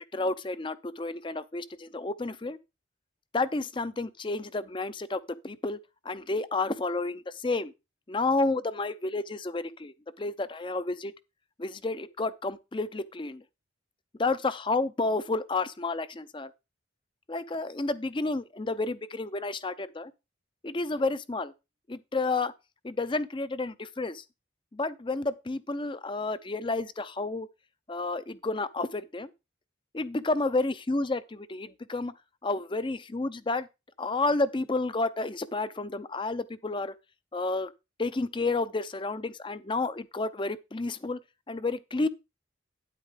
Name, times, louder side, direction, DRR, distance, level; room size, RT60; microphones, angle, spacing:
voice 1, 0.0-2.6 3.3-5.8 6.0-7.7 8.1-11.1 11.6-13.4 14.2-16.5 17.3-20.1 20.6-21.5 21.9-22.5 22.8-24.2 24.7-27.5 27.9-29.3 29.9-32.1 32.4-33.7 34.0-36.9 37.3-37.7 38.0-41.2 41.5-42.1, left 3 dB, 25° left, 0.5 m, -30 dB
9.8 x 8.3 x 3.7 m
head